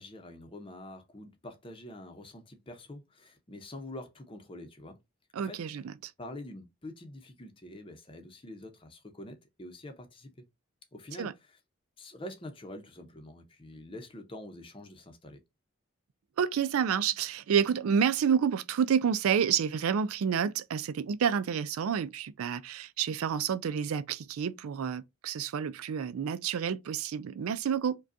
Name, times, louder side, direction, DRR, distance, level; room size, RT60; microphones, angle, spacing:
voice 1, 0.0-5.0 5.4-5.8 6.2-10.4 10.9-11.6 12.0-15.4, left 1 dB, 25° left, 0.7 m, -46 dB
voice 2, 5.3-5.8 11.2-11.3 16.4-28.0, right 7 dB, 85° right, 0.4 m, -29 dB
4.9 x 2.3 x 2.6 m
head